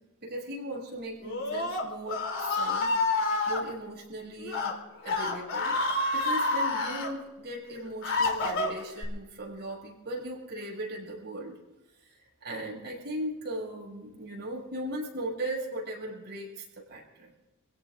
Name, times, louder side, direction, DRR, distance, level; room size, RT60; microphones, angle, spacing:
voice 1, 0.2-2.9 3.5-4.8 5.0-11.6 12.0-17.3, right 1 dB, 50° right, -3 dB, 7.0 m, -38 dB
Screaming, 1.2-3.6 4.4-4.7 5.0-7.1 7.7-9.0, left 2 dB, 60° left, 3.3 m, -28 dB
28.0 x 17.0 x 2.6 m, 1.0 s
head